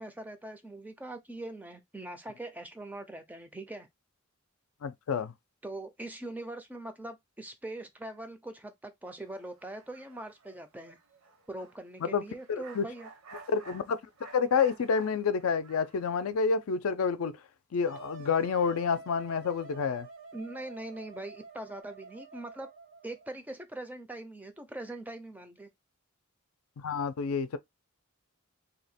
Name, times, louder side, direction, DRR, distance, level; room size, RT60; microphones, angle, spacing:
voice 1, 0.0-3.9 5.6-11.0 11.5-13.1 20.3-22.7 23.0-25.7, right 1 dB, 10° right, 0.4 m, -42 dB
voice 2, 4.8-5.3 12.0-12.2 12.5-12.9 13.5-17.4 17.7-20.1 26.8-27.6, left 5 dB, 80° left, 0.4 m, -29 dB
sound 1, 9.2-16.3, right 3 dB, 80° right, 0.9 m, -52 dB
Wind instrument woodwind instrument, 17.8-23.3, right 4 dB, 60° right, 0.6 m, -49 dB
2.8 x 2.1 x 4.0 m
head